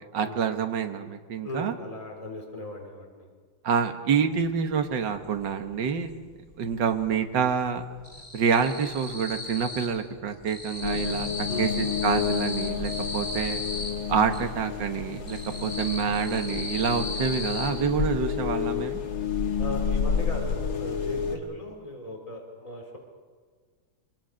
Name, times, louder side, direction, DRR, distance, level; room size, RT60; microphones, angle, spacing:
voice 1, 0.1-1.7 3.6-6.1 6.6-7.8 8.3-13.6 14.1-19.0, right 6 dB, 60° right, 7 dB, 2.0 m, -27 dB
voice 2, 1.4-3.3 11.5-11.9 15.5-15.8 19.6-23.0, left 1 dB, 15° left, 0 dB, 3.9 m, -38 dB
sound 1, 4.5-4.6 4.9-6.1 6.4-7.1 7.3-10.0 10.3-14.4 14.9-17.7, left 2 dB, 40° left, 6.9 m, -36 dB
sound 2, 10.8-21.4, left 6 dB, 75° left, 2.7 m, -30 dB
25.0 x 23.5 x 6.5 m, 1.5 s
omnidirectional pair, 2.3 m